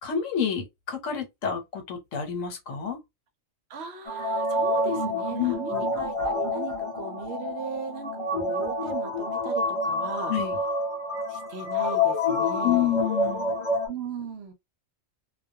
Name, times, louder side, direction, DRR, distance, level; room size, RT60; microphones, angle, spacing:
voice 1, 0.0-3.0 5.4-5.9 10.3-10.6 12.6-13.6, left 9 dB, 80° left, 1.2 m, -29 dB
voice 2, 3.7-10.3 11.3-13.0 13.7-14.5, right 5 dB, 65° right, 0.8 m, -38 dB
sound 1, 4.1-13.9, left 2 dB, 35° left, 0.6 m, -28 dB
2.2 x 2.2 x 2.7 m
omnidirectional pair, 1.3 m